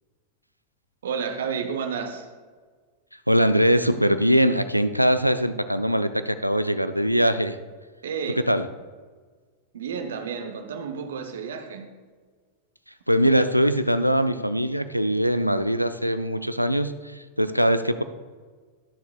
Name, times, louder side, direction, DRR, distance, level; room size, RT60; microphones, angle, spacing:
voice 1, 1.0-2.3 8.0-8.5 9.7-11.9, right 6 dB, 65° right, 0.9 m, -31 dB
voice 2, 3.3-7.6 8.5-8.7 13.1-18.0, equal, 90° right, 0.5 m, -22 dB
21.0 x 7.0 x 2.3 m
figure-of-eight pair, 90°, 0 cm